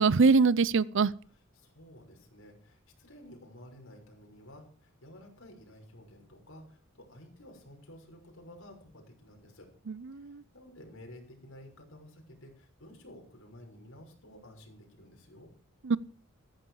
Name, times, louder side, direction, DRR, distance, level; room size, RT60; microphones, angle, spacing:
voice 1, 0.0-1.1 9.9-10.4 15.8-16.0, right 4 dB, 60° right, 0.6 m, -23 dB
voice 2, 1.3-9.7 10.1-15.5, left 1 dB, 75° left, 6.2 m, -52 dB
15.0 x 14.5 x 4.9 m
head